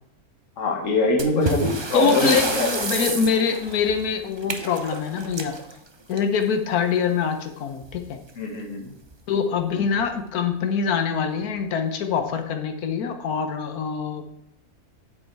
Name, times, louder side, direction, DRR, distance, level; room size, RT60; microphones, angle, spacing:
voice 1, 0.6-2.7 8.4-8.9, left 2 dB, 60° left, 2 dB, 1.8 m, -24 dB
sound 1, 1.2-6.6 7.8-8.0 8.3-8.4 9.0-9.1 9.8-10.1, right 3 dB, 25° right, 0.6 m, -30 dB
voice 2, 1.3-5.6 6.1-8.2 9.3-14.3, left 6 dB, 80° left, 6 dB, 1.4 m, -24 dB
8.0 x 7.9 x 4.6 m, 0.78 s
omnidirectional pair, 1.6 m